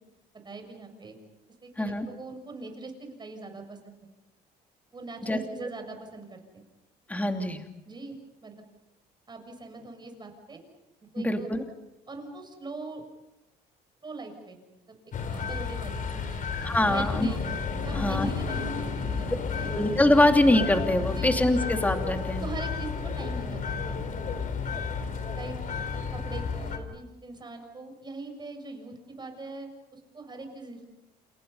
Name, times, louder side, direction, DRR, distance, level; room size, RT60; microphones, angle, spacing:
voice 1, 0.4-1.2 1.6-4.0 4.9-6.6 7.9-8.7 9.3-10.6 11.0-11.5 12.1-13.0 14.0-14.6 14.9-15.0 15.3-16.4 16.8-17.4 17.8-19.8 21.2-21.3 21.6-21.7 22.3-24.0 25.3-25.6 26.1-30.9, right 3 dB, 25° right, 5 dB, 6.9 m, -42 dB
voice 2, 7.1-7.6 11.2-11.6 16.5-17.3 17.9-18.3 19.7-22.4, left 1 dB, 10° left, 5 dB, 2.7 m, -24 dB
sound 1, 15.1-26.8, left 5 dB, 50° left, 3.9 m, -32 dB
29.0 x 28.5 x 5.6 m, 0.92 s
cardioid pair, 110°, 17 cm